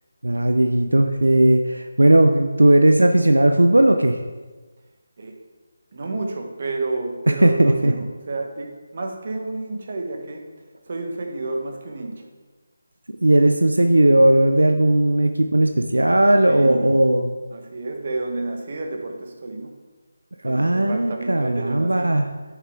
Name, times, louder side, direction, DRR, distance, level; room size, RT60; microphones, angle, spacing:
voice 1, 0.2-4.2 7.4-7.9 13.2-17.4 20.4-22.3, right 1 dB, 85° right, 6 dB, 0.5 m, -17 dB
voice 2, 5.9-10.5 10.9-12.3 16.5-17.0 17.5-19.8 20.4-22.2, right 2 dB, 50° right, 3 dB, 1.3 m, -30 dB
7.2 x 6.7 x 3.7 m, 1.3 s
figure-of-eight pair, 160°, 0 cm